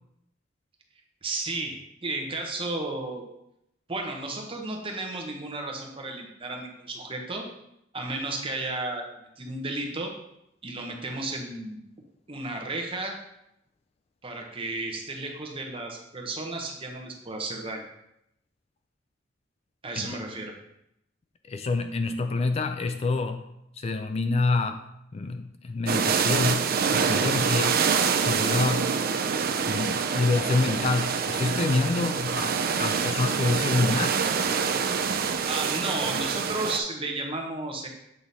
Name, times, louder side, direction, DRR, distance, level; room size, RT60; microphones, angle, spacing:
voice 1, 1.2-3.2 3.9-7.4 7.9-10.1 10.6-11.8 12.3-13.1 14.2-17.8 19.8-20.5 35.5-37.9, right 2 dB, 30° right, 1 dB, 1.0 m, -33 dB
voice 2, 21.5-23.4 23.8-24.8 25.1-27.9 28.2-29.0 29.6-34.2, left 3 dB, 35° left, 8 dB, 0.3 m, -27 dB
sound 1, 25.9-36.8, right 6 dB, 50° right, 0.4 m, -26 dB
7.9 x 3.7 x 4.1 m, 0.81 s
head